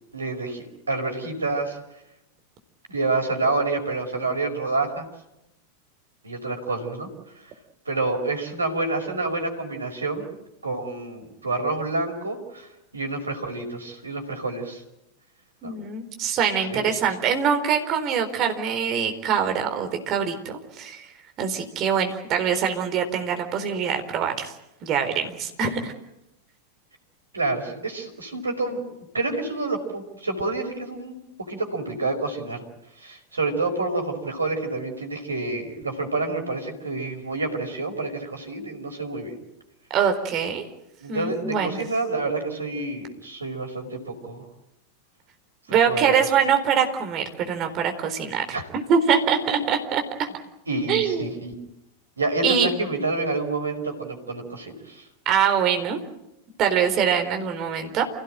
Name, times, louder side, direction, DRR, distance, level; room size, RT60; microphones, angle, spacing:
voice 1, 0.1-1.8 2.9-5.1 6.2-7.1 7.4-7.5 7.9-10.3 10.6-14.8 15.6-15.8 16.7-16.9 27.3-28.8 29.1-31.2 31.5-32.6 33.0-39.4 41.0-44.4 45.7-46.1 48.5-48.6 50.7-51.5 52.2-55.0, right 3 dB, 75° right, 4 dB, 5.1 m, -28 dB
voice 2, 15.6-21.1 21.4-24.5 24.8-25.9 39.9-40.6 41.1-41.8 45.7-48.4 48.7-50.3 50.9-51.3 52.4-52.7 55.3-56.0 56.6-58.0, right 7 dB, 35° right, 6 dB, 4.1 m, -24 dB
29.0 x 17.0 x 9.0 m, 0.91 s
figure-of-eight pair, 90°, 0 cm